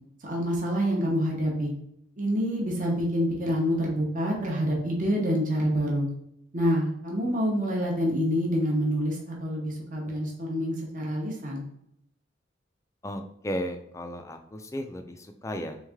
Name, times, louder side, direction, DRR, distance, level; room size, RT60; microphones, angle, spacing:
voice 1, 0.2-1.7 2.2-6.1 6.5-11.6, equal, 40° right, -2 dB, 0.8 m, -27 dB
voice 2, 13.0-15.9, equal, 15° left, 6 dB, 0.3 m, -35 dB
3.5 x 3.2 x 3.5 m, 0.76 s
head